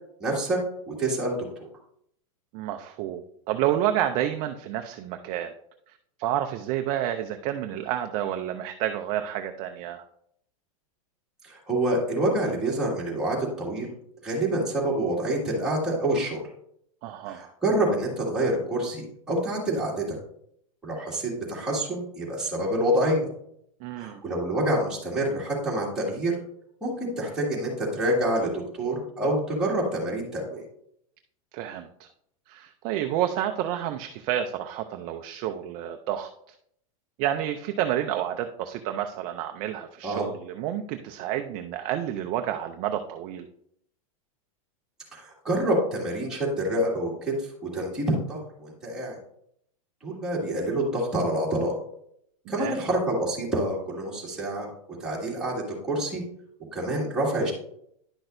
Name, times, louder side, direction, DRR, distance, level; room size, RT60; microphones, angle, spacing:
voice 1, 0.2-0.6 0.9-1.3 1.6-1.7 11.4-13.9 14.2-16.4 17.3-20.2 20.8-23.3 24.0-26.4 26.8-30.6 40.0-40.3 45.1-49.2 50.0-51.8 52.5-54.7 55.0-56.2 56.7-57.5, right 1 dB, 5° right, -6 dB, 2.1 m, -27 dB
voice 2, 2.5-5.5 5.9-10.0 17.0-17.5 23.8-24.2 31.5-32.1 32.5-36.6 37.2-43.5 52.6-52.8, right 11 dB, 25° right, 6 dB, 0.4 m, -30 dB
10.5 x 6.0 x 2.6 m, 0.70 s
supercardioid pair, 165°, 18 cm